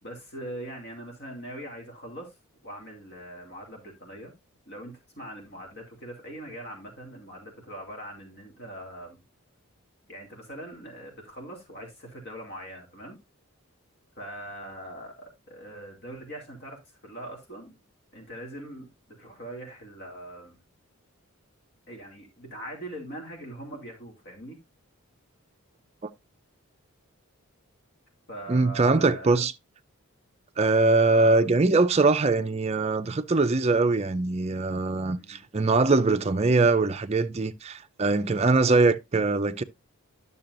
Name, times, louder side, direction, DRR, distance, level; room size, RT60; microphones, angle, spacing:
voice 1, 0.0-2.3 2.6-4.3 4.7-9.2 10.1-13.2 14.2-17.8 18.1-20.6 21.9-24.6 28.3-29.4 31.1-31.5 35.1-35.4, right 1 dB, 50° left, 2.6 m, -41 dB
voice 2, 28.5-29.5 30.6-39.6, right 3 dB, 30° right, 0.4 m, -22 dB
10.5 x 6.7 x 2.5 m
head